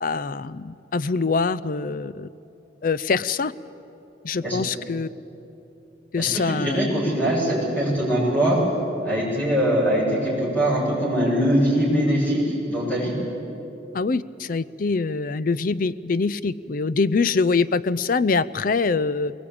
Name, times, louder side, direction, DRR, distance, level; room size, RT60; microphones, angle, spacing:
voice 1, 0.0-2.3 2.8-3.5 4.2-5.1 6.1-6.9 13.9-19.3, left 4 dB, 50° left, 15 dB, 0.5 m, -24 dB
voice 2, 6.2-8.6 9.0-13.1, equal, 10° left, -6 dB, 7.0 m, -22 dB
22.0 x 19.5 x 8.7 m, 2.9 s
head